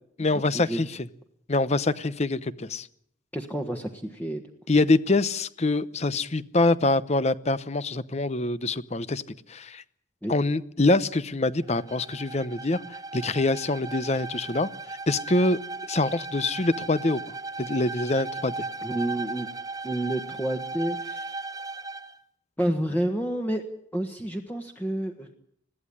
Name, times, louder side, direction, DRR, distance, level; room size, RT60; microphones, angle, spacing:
voice 1, 0.2-0.9 1.5-2.9 4.7-9.2 9.5-9.8 10.3-15.6 15.9-17.2 17.6-18.6, left 2 dB, 35° left, 15 dB, 0.8 m, -25 dB
voice 2, 3.3-4.4 10.2-10.3 18.8-19.5 19.8-21.3 22.6-23.6 23.9-25.3, right 1 dB, 10° left, 3 dB, 1.4 m, -29 dB
Bowed string instrument, 11.6-22.1, right 3 dB, 20° right, 0.9 m, -37 dB
21.0 x 15.5 x 9.9 m, 0.69 s
head